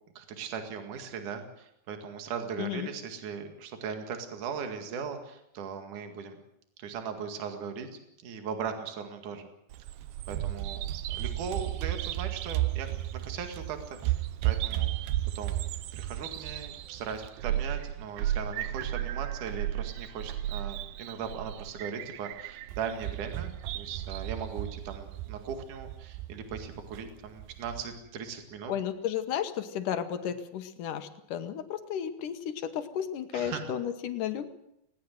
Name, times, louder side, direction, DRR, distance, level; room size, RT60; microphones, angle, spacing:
voice 1, 0.1-6.4 6.8-7.9 8.2-9.5 10.3-10.8 11.1-14.9 15.3-28.7 30.2-30.3 33.3-33.7, right 6 dB, 60° right, 6 dB, 3.4 m, -38 dB
voice 2, 2.6-2.9 28.7-34.5, left 9 dB, 65° left, 9 dB, 2.6 m, -33 dB
Bird vocalization bird call bird song, 9.7-27.8, right 14 dB, 75° right, 2.6 m, -34 dB
20.0 x 18.0 x 7.7 m, 0.79 s
omnidirectional pair, 4.3 m